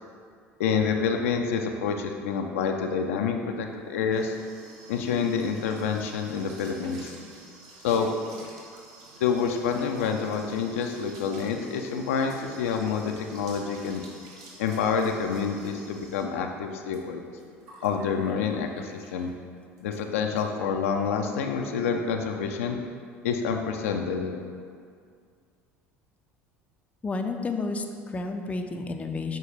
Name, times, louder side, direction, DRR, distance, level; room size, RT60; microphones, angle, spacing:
voice 1, 0.6-4.3 4.9-7.1 7.8-8.1 9.2-14.0 14.6-17.2 17.8-19.3 19.8-22.8 23.2-24.4, left 6 dB, 70° left, 3 dB, 0.4 m, -27 dB
sound 1, 3.6-19.4 19.8-20.0 20.4-20.5 20.7-21.1, right 2 dB, 50° right, 1.0 m, -50 dB
voice 2, 27.0-29.4, left 3 dB, 20° left, 5 dB, 0.5 m, -31 dB
6.5 x 4.5 x 3.3 m, 2.2 s
figure-of-eight pair, 65°, 7 cm